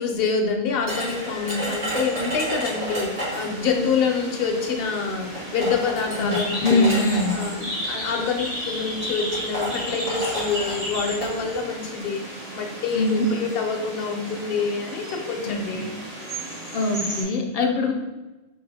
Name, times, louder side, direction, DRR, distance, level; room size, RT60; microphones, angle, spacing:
voice 1, 0.0-7.0 7.3-15.9, left 5 dB, 70° left, 3 dB, 0.8 m, -26 dB
sound 1, 0.9-17.2, equal, 65° right, 1.7 m, -35 dB
sound 2, 0.9-3.6 4.7-4.8 5.4-7.5 8.4-8.6 8.9-9.0 9.3-11.3, equal, 90° right, 1.7 m, -31 dB
voice 2, 6.6-7.3 12.9-13.3 15.4-15.8 16.7-17.9, left 2 dB, 50° left, 3 dB, 0.5 m, -22 dB
5.6 x 2.8 x 2.7 m, 1.1 s
omnidirectional pair, 1.1 m